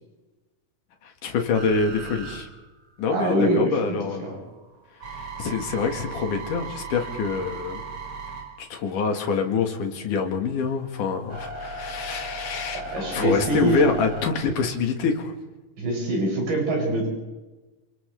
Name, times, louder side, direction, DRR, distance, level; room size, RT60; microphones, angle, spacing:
voice 1, 1.0-2.5 3.0-4.3 5.1-7.8 8.6-15.3, left 5 dB, 60° left, 4 dB, 3.2 m, -26 dB
sound 1, 1.5-3.5 3.9-9.5 10.0-14.3, right 2 dB, 35° right, 5.7 m, -37 dB
voice 2, 3.1-3.8 4.2-4.4 12.7-13.9 15.8-17.1, right 2 dB, 65° right, -3 dB, 9.8 m, -24 dB
28.0 x 27.5 x 3.5 m, 1.2 s
omnidirectional pair, 4.7 m